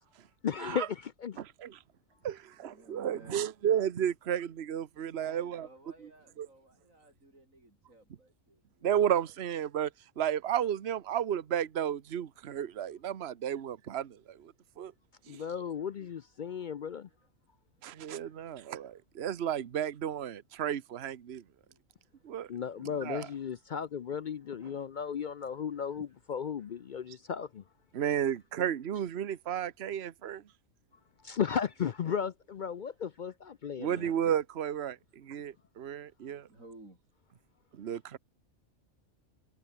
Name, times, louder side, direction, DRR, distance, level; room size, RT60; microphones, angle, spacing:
voice 1, 0.4-1.4 15.3-17.1 22.5-27.6 31.2-34.1, left 7 dB, 60° left, 0.5 m, -35 dB
voice 2, 1.4-1.8 2.2-5.7 6.4-6.5 8.8-9.9 10.2-14.9 15.3-15.4 17.8-21.4 22.2-22.5 23.0-23.3 27.9-30.4 33.8-36.5 37.7-38.2, right 9 dB, 55° right, 1.2 m, -33 dB
voice 3, 2.3-3.5 5.2-8.9 9.3-9.4 15.2-16.2 16.6-17.3 18.2-18.7 21.6-21.8 24.2-26.0 26.6-26.8 27.9-28.0 33.1-33.2 33.5-33.6 36.3-37.0, right 2 dB, 75° right, 7.6 m, -59 dB
omnidirectional pair, 1.4 m